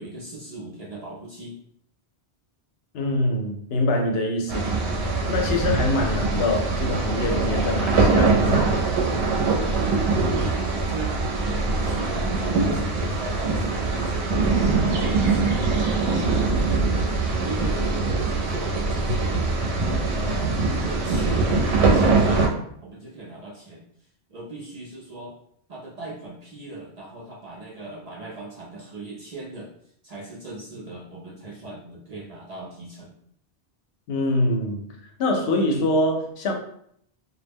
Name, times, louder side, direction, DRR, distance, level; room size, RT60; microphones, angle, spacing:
voice 1, 0.0-1.6 10.3-19.4 20.1-22.5 22.8-23.8 24.3-25.3 25.7-29.7 30.0-33.2, right 2 dB, 50° right, -4 dB, 0.5 m, -38 dB
voice 2, 2.9-4.8 5.3-8.7 34.1-34.9 35.2-36.5, left 1 dB, 75° left, 2 dB, 0.8 m, -24 dB
sound 1, 4.5-22.5, right 3 dB, 85° right, 0.8 m, -22 dB
2.2 x 2.0 x 3.3 m, 0.68 s
omnidirectional pair, 1.1 m